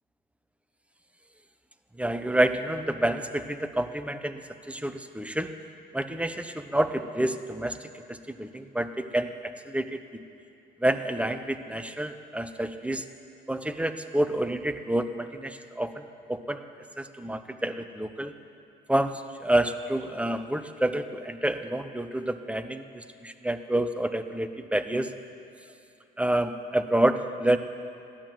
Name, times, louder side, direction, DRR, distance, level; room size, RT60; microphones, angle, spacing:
voice 1, 2.0-4.4 4.7-5.5 5.9-10.0 10.8-13.1 13.5-16.6 17.0-18.3 18.9-25.1 26.2-27.6, right 1 dB, 5° right, 9 dB, 0.8 m, -28 dB
15.5 x 11.0 x 7.6 m, 2.6 s
cardioid pair, 90°, 20 cm